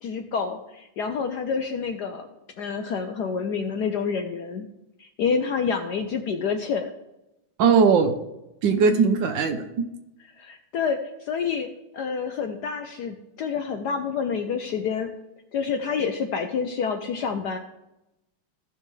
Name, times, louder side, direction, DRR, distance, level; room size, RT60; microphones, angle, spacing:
voice 1, 0.0-2.3 2.6-4.7 5.0-6.9 10.4-11.7 11.9-15.1 15.5-17.6, left 6 dB, 70° left, 5 dB, 1.0 m, -28 dB
voice 2, 7.6-8.1 8.6-9.8, right 5 dB, 65° right, 6 dB, 1.4 m, -19 dB
15.5 x 5.7 x 3.2 m, 0.92 s
omnidirectional pair, 2.4 m